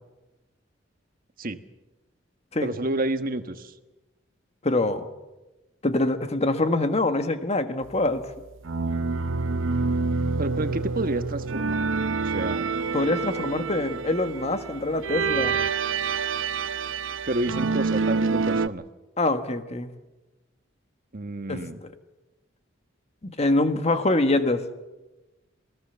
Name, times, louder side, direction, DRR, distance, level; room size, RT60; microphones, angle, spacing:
voice 1, 2.6-3.7 10.4-11.9 12.2-12.7 17.3-18.8 21.1-21.8, right 2 dB, 50° right, 8 dB, 1.4 m, -29 dB
voice 2, 4.6-5.0 5.8-8.3 8.9-9.0 12.9-15.6 19.2-19.9 21.5-21.9 23.2-24.7, left 2 dB, 35° left, 8 dB, 1.6 m, -24 dB
sound 1, 8.6-18.7, right 4 dB, 85° right, 0.7 m, -27 dB
27.5 x 18.0 x 7.0 m, 1.1 s
head